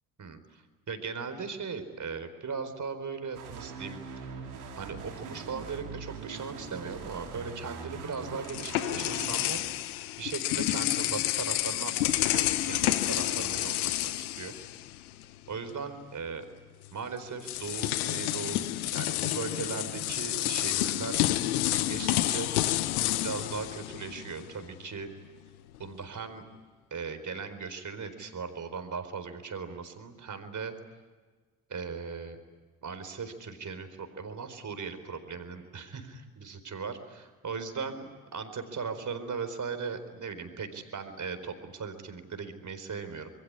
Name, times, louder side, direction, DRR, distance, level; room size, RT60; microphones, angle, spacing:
voice 1, 0.2-0.6 0.9-4.0 4.8-9.6 10.2-14.6 15.5-16.5 16.9-18.6 18.9-22.5 23.2-25.1 25.8-26.4 26.9-30.7 31.7-32.4 32.8-43.3, right 5 dB, 45° right, 8 dB, 4.4 m, -38 dB
sound 1, 3.3-9.5, right 5 dB, 85° right, 3.5 m, -42 dB
sound 2, 8.0-15.2 15.5-15.7 16.8-16.9 17.4-24.6, left 15 dB, 85° left, 1.0 m, -29 dB
27.0 x 22.0 x 9.9 m, 1.4 s
hypercardioid pair, 45°, 43 cm